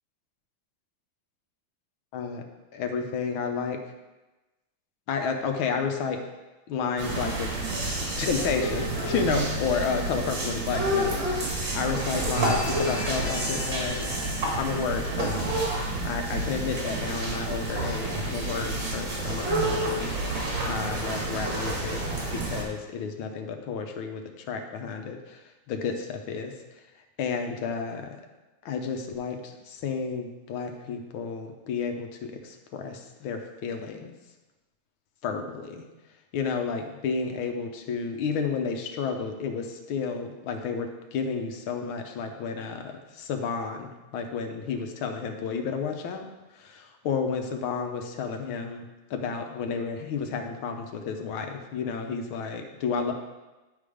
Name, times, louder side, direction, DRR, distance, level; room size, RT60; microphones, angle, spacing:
voice 1, 2.1-2.4 2.7-3.8 5.1-6.2 6.7-7.5 7.9-14.2 14.6-22.0 22.3-25.4 25.7-26.5 27.2-28.1 28.6-34.1 35.2-35.9 36.3-46.3 46.5-53.1, left 5 dB, 80° left, 5 dB, 1.6 m, -31 dB
sound 1, 7.0-22.6, right 1 dB, 70° right, 2.4 m, -29 dB
sound 2, 12.3-17.1, left 2 dB, 55° left, 2.2 m, -41 dB
10.5 x 3.8 x 4.9 m, 1.1 s
omnidirectional pair, 2.2 m